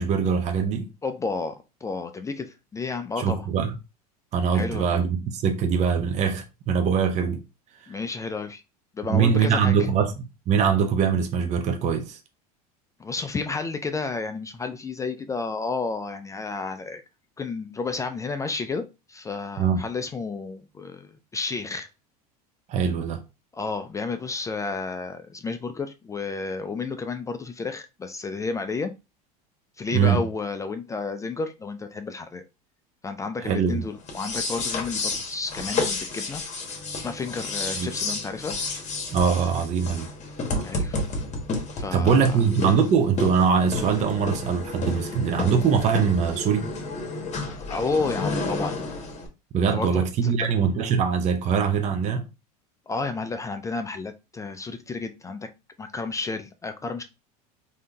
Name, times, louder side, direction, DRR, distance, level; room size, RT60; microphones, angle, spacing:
voice 1, 0.0-0.9 3.2-3.7 4.3-7.4 9.1-10.1 10.5-12.2 19.6-19.8 22.7-23.2 29.9-30.2 33.4-33.8 37.8-37.9 39.1-40.1 41.9-46.7 49.5-52.3, right 6 dB, 35° right, 0.5 m, -22 dB
voice 2, 1.0-3.5 4.5-4.9 7.9-8.6 8.9-9.7 13.0-17.0 17.4-21.9 23.5-28.9 29.8-32.4 33.0-36.4 36.9-38.5 40.6-41.0 41.8-42.4 47.7-48.8 49.7-50.5 52.9-55.5 55.8-57.0, left 4 dB, 15° left, 0.3 m, -31 dB
sound 1, 34.0-49.3, left 3 dB, 35° left, 1.0 m, -31 dB
3.4 x 2.7 x 2.2 m
hypercardioid pair, 95°, 20 cm